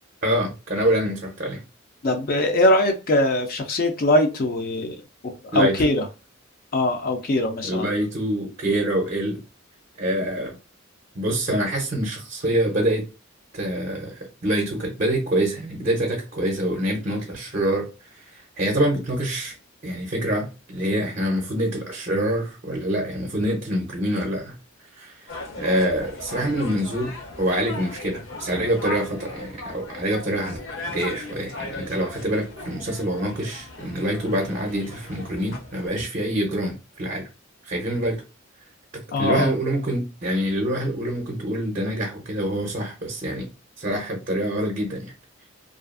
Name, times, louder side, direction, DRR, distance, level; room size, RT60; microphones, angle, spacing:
voice 1, 0.2-1.6 5.5-5.8 7.6-9.4 10.0-10.5 11.1-13.1 13.5-17.9 18.2-19.5 19.8-24.6 25.0-30.6 30.9-37.3 37.6-38.2 39.2-43.5 43.8-45.1, right 1 dB, 40° right, 0.5 m, -25 dB
voice 2, 2.0-5.0 5.2-6.1 6.7-7.9 39.1-39.5, left 1 dB, 45° left, 0.4 m, -21 dB
sound 1, 25.3-35.9, left 3 dB, 65° left, 0.8 m, -38 dB
2.4 x 2.3 x 2.4 m
head